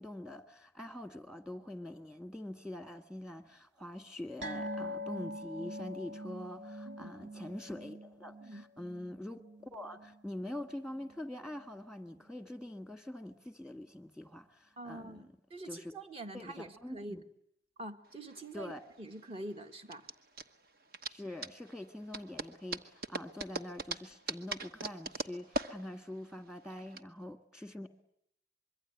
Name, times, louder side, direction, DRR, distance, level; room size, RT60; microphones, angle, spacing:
voice 1, 0.0-15.3 15.6-15.9 16.3-17.2 18.5-18.8 21.1-27.9, left 1 dB, 5° right, 1.7 m, -44 dB
sound 1, 4.4-11.2 11.5-11.7 12.1-12.2, equal, 75° right, 2.6 m, -44 dB
voice 2, 14.8-17.2 17.8-18.7 19.0-20.1, right 2 dB, 35° right, 1.8 m, -45 dB
sound 2, 18.1-27.0, right 2 dB, 60° right, 1.2 m, -41 dB
25.0 x 23.0 x 9.4 m
head